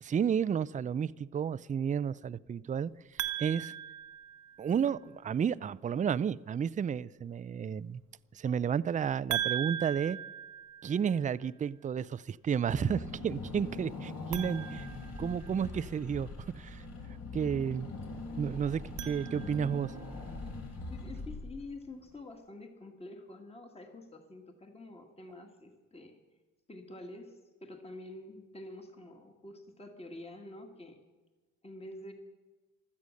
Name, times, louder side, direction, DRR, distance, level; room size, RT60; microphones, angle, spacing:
voice 1, 0.0-3.7 4.6-8.0 8.3-10.2 10.8-14.9 15.2-16.8 17.3-17.9 18.4-19.9, right 7 dB, 25° right, 18 dB, 0.4 m, -32 dB
sound 1, 3.2-4.9 9.3-11.3 14.2-15.8 18.7-19.9, right 11 dB, 75° right, 1.0 m, -39 dB
Car / Engine, 12.7-21.9, left 2 dB, 60° left, 3.4 m, -42 dB
voice 2, 20.9-26.2 26.7-31.0 31.6-32.1, left 2 dB, 20° left, 4 dB, 1.9 m, -47 dB
16.0 x 12.5 x 6.5 m, 1.3 s
cardioid pair, 90°, 30 cm